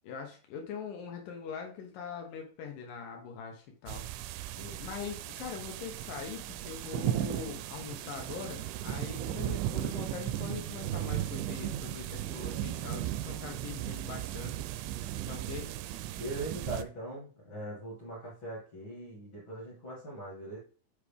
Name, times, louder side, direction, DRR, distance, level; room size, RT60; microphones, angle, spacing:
voice 1, 0.0-14.7 15.3-15.7, left 6 dB, 80° left, 3 dB, 1.9 m, -42 dB
sound 1, 3.9-16.8, right 13 dB, 85° right, 2.9 m, -36 dB
voice 2, 16.2-20.6, right 1 dB, 50° left, -4 dB, 1.4 m, -41 dB
9.6 x 4.9 x 3.5 m, 0.39 s
omnidirectional pair, 5.3 m